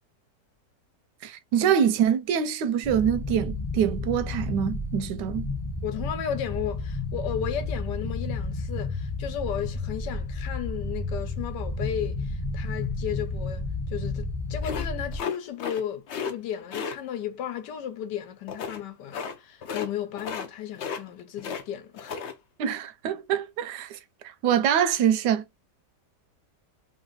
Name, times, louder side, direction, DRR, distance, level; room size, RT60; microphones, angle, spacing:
voice 1, 1.2-5.5 22.6-24.0 24.2-25.4, right 8 dB, 85° right, 1.2 m, -25 dB
sound 1, 2.8-15.2, left 2 dB, 30° left, 0.4 m, -32 dB
voice 2, 5.8-22.2, left 9 dB, 85° left, 1.4 m, -34 dB
sound 2, 14.6-15.8 16.1-16.3 16.7-17.0 18.5-18.8 19.1-19.3 19.6-19.9 20.2-20.5 20.7-21.6 21.9-22.3, left 6 dB, 65° left, 0.7 m, -34 dB
3.2 x 2.6 x 3.8 m
omnidirectional pair, 1.8 m